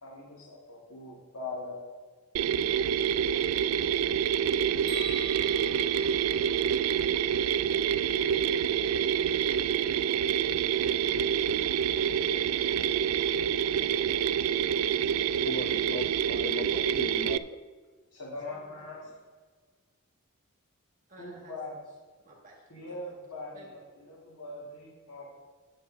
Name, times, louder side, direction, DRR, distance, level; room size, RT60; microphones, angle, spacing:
voice 1, 0.0-1.8 18.1-19.1 21.2-21.7 22.7-25.3, left 2 dB, 85° left, -5 dB, 2.0 m, -41 dB
Mechanisms, 2.4-17.4, right 8 dB, 70° right, 0.3 m, -27 dB
sound 1, 4.9-7.1, equal, 55° left, 3.1 m, -44 dB
voice 2, 11.9-12.6 18.5-18.7 21.1-21.6 22.2-23.1 23.5-23.7, right 1 dB, 35° right, -1 dB, 1.7 m, -55 dB
voice 3, 15.5-17.6, left 2 dB, 40° left, 7 dB, 0.4 m, -38 dB
18.0 x 8.2 x 2.7 m, 1.5 s
head